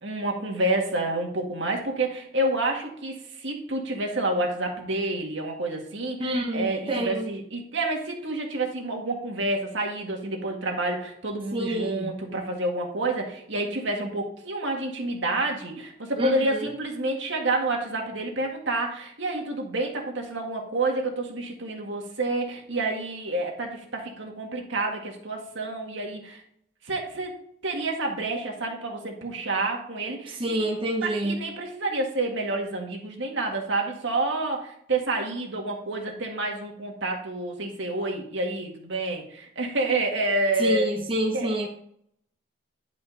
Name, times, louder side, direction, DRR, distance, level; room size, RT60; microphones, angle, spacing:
voice 1, 0.0-26.4 26.8-27.4 27.6-30.6 31.0-40.9 41.3-41.5, right 2 dB, 65° right, 1 dB, 1.9 m, -29 dB
voice 2, 6.2-7.3 11.5-12.1 16.2-16.7 30.3-31.4 40.6-41.7, right 1 dB, 25° right, 0 dB, 0.9 m, -27 dB
10.5 x 5.3 x 4.0 m, 0.68 s
head